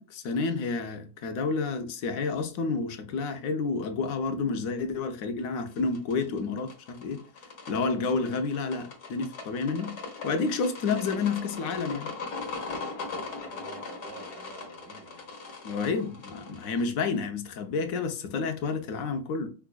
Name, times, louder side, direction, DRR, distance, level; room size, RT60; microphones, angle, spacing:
voice 1, 0.0-7.2 7.7-9.9 10.2-12.1 15.6-19.5, left 4 dB, 70° left, 1.0 m, -30 dB
sound 1, 5.7-16.8, left 4 dB, 90° left, 1.6 m, -40 dB
voice 2, 13.0-15.3, right 5 dB, 85° right, 1.2 m, -49 dB
4.8 x 2.3 x 2.3 m
omnidirectional pair, 1.6 m